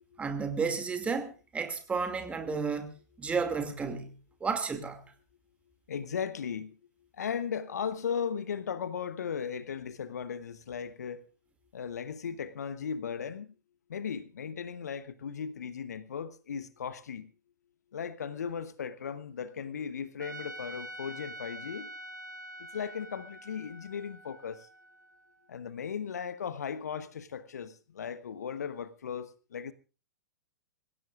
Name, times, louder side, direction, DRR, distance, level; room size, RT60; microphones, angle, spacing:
voice 1, 0.2-4.1 4.4-5.0, right 5 dB, 15° right, 2.5 m, -32 dB
voice 2, 5.9-11.2 11.7-13.5 13.9-17.3 17.9-21.9 22.6-24.7 25.5-29.7, left 7 dB, 65° left, 1.1 m, -37 dB
Trumpet, 20.2-25.4, right 1 dB, 85° right, 1.2 m, -46 dB
26.0 x 16.0 x 2.5 m
figure-of-eight pair, 105°, 10 cm